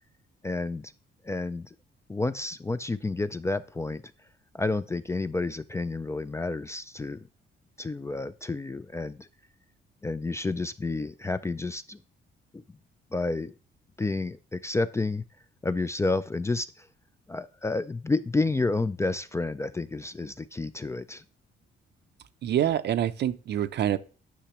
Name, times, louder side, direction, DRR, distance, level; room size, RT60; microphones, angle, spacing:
voice 1, 0.4-0.9 1.2-1.7 2.1-4.0 4.5-7.3 7.8-9.3 10.0-12.0 12.5-12.6 13.1-13.5 14.0-15.2 15.6-16.9 17.3-21.2, left 3 dB, 15° left, 0.3 m, -30 dB
voice 2, 22.4-24.0, right 11 dB, 60° right, 0.6 m, -26 dB
10.0 x 5.9 x 2.9 m
cardioid pair, 90°, 20 cm